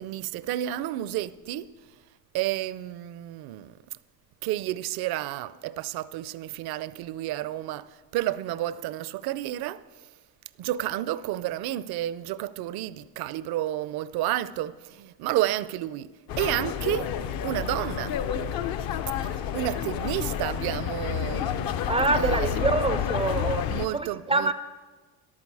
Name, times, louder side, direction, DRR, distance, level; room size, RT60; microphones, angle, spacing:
voice 1, 0.0-1.7 2.3-3.8 4.4-7.9 8.1-9.8 10.6-16.1 16.4-17.1 17.4-18.2 19.2-22.5 23.7-24.5, right 14 dB, 60° right, 0.6 m, -31 dB
sound 1, 16.3-23.9, left 9 dB, 60° left, 0.7 m, -29 dB
voice 2, 21.9-23.7 23.9-24.5, right 3 dB, 15° right, 0.3 m, -25 dB
14.0 x 11.5 x 4.8 m
cardioid pair, 130°, 41 cm